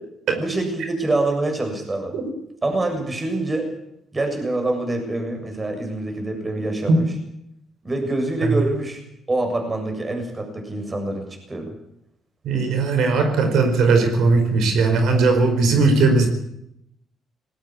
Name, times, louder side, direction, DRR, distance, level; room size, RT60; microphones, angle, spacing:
voice 1, 0.4-2.2 2.6-3.7 4.1-7.1 7.8-9.0 9.3-11.7, right 2 dB, 25° right, 4 dB, 7.3 m, -25 dB
voice 2, 12.4-16.3, right 3 dB, 80° right, 7 dB, 4.9 m, -18 dB
19.5 x 19.0 x 8.6 m, 0.78 s
cardioid pair, 90°, 0 cm